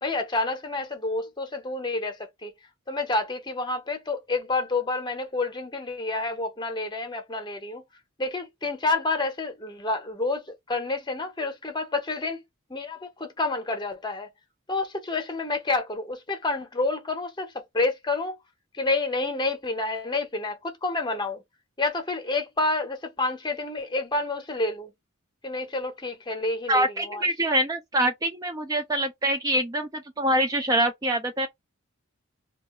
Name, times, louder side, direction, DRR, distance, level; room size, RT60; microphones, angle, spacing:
voice 1, 0.0-2.5 2.9-7.8 8.2-12.4 12.7-14.3 14.7-18.4 18.7-21.4 21.8-24.9 25.4-27.3, left 2 dB, 20° left, 0.8 m, -29 dB
voice 2, 26.7-31.5, right 1 dB, 15° right, 0.4 m, -25 dB
2.6 x 2.3 x 4.1 m
head